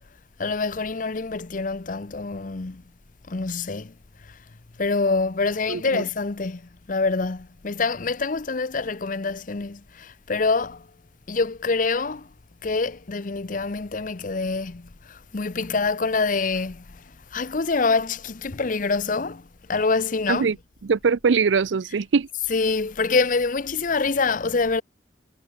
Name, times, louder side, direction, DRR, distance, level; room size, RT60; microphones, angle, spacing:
voice 1, 0.4-2.8 3.3-3.9 4.2-4.4 4.8-6.6 6.9-10.9 11.3-12.3 12.6-17.0 17.3-20.5 22.5-24.8, left 4 dB, 45° left, 0.8 m, -25 dB
voice 2, 5.7-6.0 20.3-20.6 20.8-22.3, right 5 dB, 85° right, 0.5 m, -22 dB
head